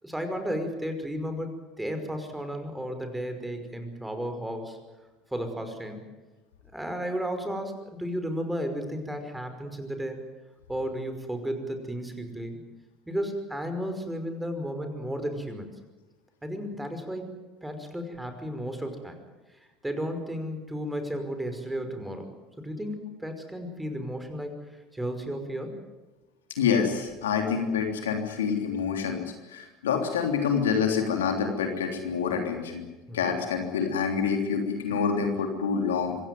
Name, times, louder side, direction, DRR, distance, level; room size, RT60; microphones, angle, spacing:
voice 1, 0.0-4.8 5.3-6.1 6.7-10.2 10.7-12.6 13.1-15.7 16.4-17.3 17.6-19.2 19.8-22.3 22.6-24.6 24.9-25.7 33.1-33.4, equal, 5° right, 7 dB, 5.4 m, -33 dB
voice 2, 26.6-29.2 29.5-32.9 33.1-36.2, left 6 dB, 85° left, 4 dB, 3.4 m, -27 dB
25.5 x 16.0 x 9.4 m, 1.1 s
hypercardioid pair, 75°, 0 cm